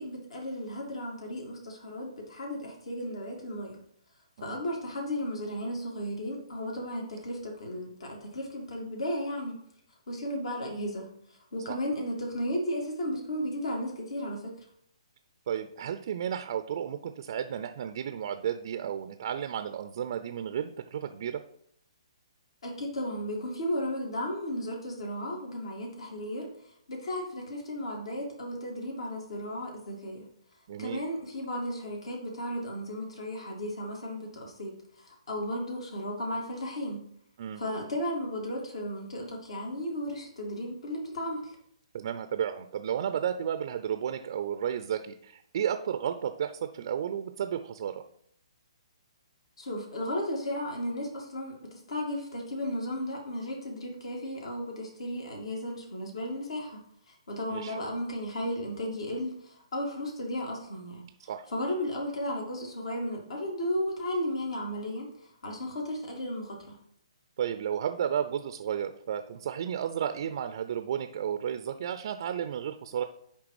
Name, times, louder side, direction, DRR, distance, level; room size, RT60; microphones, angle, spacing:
voice 1, 0.0-3.8 4.4-9.6 10.1-11.1 11.5-14.5 22.6-26.5 26.9-30.2 30.8-37.0 37.6-41.6 49.6-61.0 61.5-65.1 65.4-66.8, left 1 dB, 65° left, 0 dB, 2.3 m, -34 dB
voice 2, 15.5-21.4 30.7-31.0 37.4-37.6 41.9-48.0 57.5-57.8 61.3-61.5 67.4-73.0, right 9 dB, 50° right, 9 dB, 0.5 m, -33 dB
9.9 x 3.4 x 4.8 m, 0.69 s
figure-of-eight pair, 130°, 3 cm